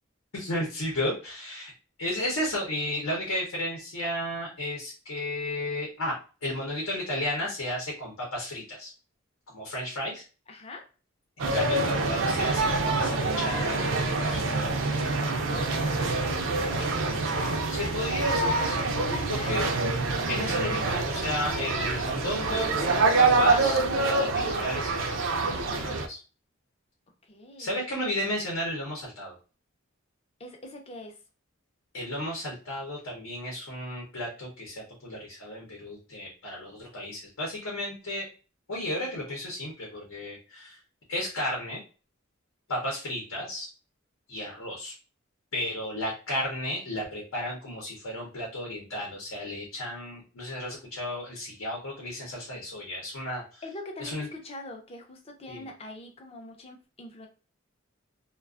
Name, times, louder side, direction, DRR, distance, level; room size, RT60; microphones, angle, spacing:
voice 1, 0.3-1.7 2.0-6.1 6.4-8.9 9.5-10.2 11.4-14.4 17.7-19.7 20.3-25.3 25.7-26.2 27.6-29.4 31.9-38.3 38.7-40.8 41.1-41.8 42.7-43.7 44.3-44.9 45.5-53.6 54.0-54.3 55.5-55.6, left 1 dB, 85° left, -2 dB, 0.8 m, -33 dB
voice 2, 10.5-10.8 15.2-17.0 17.3-17.6 18.4-19.8 27.2-27.8 30.4-31.2 53.6-57.3, left 2 dB, 30° left, 3 dB, 0.5 m, -43 dB
sound 1, 11.4-26.1, right 3 dB, 60° right, 0.4 m, -26 dB
2.4 x 2.2 x 2.3 m, 0.34 s
head